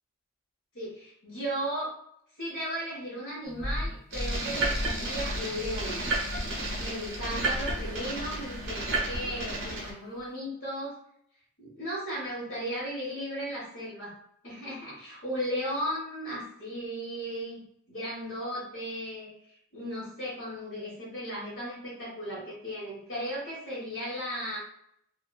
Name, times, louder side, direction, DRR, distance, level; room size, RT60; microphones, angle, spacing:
voice 1, 0.7-1.9 2.4-6.0 6.8-11.0 11.6-14.1 14.4-17.6 17.9-24.6, equal, 85° left, -9 dB, 1.1 m, -36 dB
sound 1, 3.4-8.9 9.1-9.9, left 1 dB, 15° right, 1.3 m, -38 dB
sound 2, 4.1-9.9, right 2 dB, 70° right, 0.9 m, -32 dB
2.8 x 2.4 x 2.3 m, 0.69 s
head